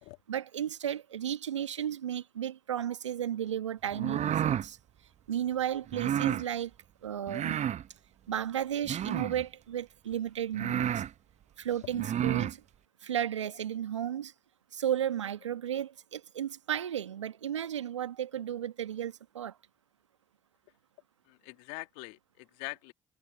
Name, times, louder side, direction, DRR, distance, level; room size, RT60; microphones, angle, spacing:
voice 1, 0.3-4.8 5.3-6.7 7.0-7.6 8.3-11.0 11.6-12.6 13.0-14.3 14.7-19.6, right 10 dB, 90° right, 1.3 m, -34 dB
sound 1, 3.9-4.7 5.9-6.4 7.3-7.8 8.8-9.4 10.1-10.2 10.5-11.1 11.9-12.5, right 10 dB, 50° right, 0.9 m, -30 dB
voice 2, 21.3-22.9, left 29 dB, 75° left, 2.5 m, -43 dB
figure-of-eight pair, 45°, 15 cm